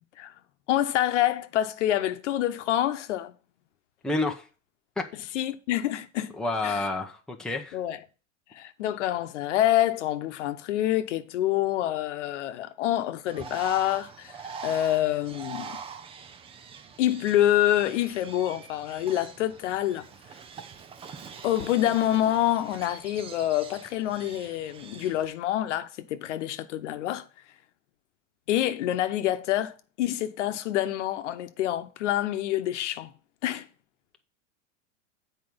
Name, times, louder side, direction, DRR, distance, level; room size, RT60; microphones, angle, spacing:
voice 1, 0.7-3.4 5.3-6.3 6.6-6.8 7.7-8.0 8.5-15.8 17.0-20.1 21.4-27.3 28.5-33.1 33.4-33.7, left 13 dB, 70° left, 1.0 m, -27 dB
voice 2, 4.0-4.5 5.0-5.1 6.4-7.8, left 2 dB, ahead, 0.9 m, -29 dB
Bird, 13.3-25.3, right 6 dB, 15° right, 0.5 m, -44 dB
7.9 x 4.7 x 5.3 m
supercardioid pair, 135°, 36 cm